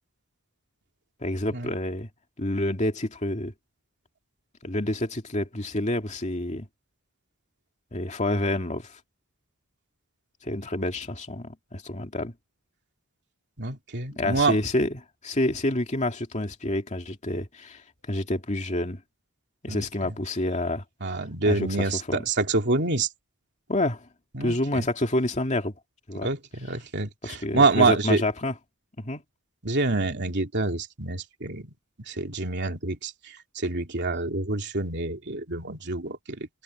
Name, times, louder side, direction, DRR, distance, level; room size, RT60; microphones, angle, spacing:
voice 1, 1.2-2.1 2.4-3.5 4.6-6.7 7.9-9.0 10.4-12.3 14.1-17.8 18.1-19.0 19.6-20.8 21.4-22.2 23.7-24.1 24.4-25.7 26.1-26.3 27.2-28.5 29.0-29.2, left 1 dB, 35° left, 2.5 m, -28 dB
voice 2, 13.6-14.6 19.7-19.8 21.0-23.1 24.3-24.9 26.2-28.2 29.6-31.7 32.1-36.5, right 3 dB, 55° right, 2.9 m, -26 dB
head